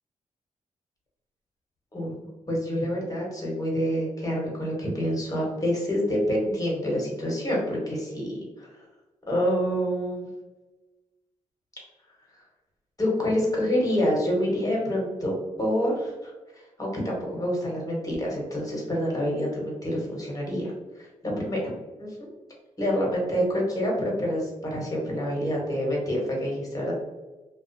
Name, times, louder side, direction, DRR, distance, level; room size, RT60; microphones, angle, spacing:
voice 1, 2.5-8.7 9.3-10.3 13.0-20.7 21.0-21.7 22.0-22.3 22.8-26.9, equal, 25° left, -2 dB, 1.2 m, -27 dB
2.3 x 2.3 x 2.6 m, 1.2 s
cardioid pair, 60°, 14 cm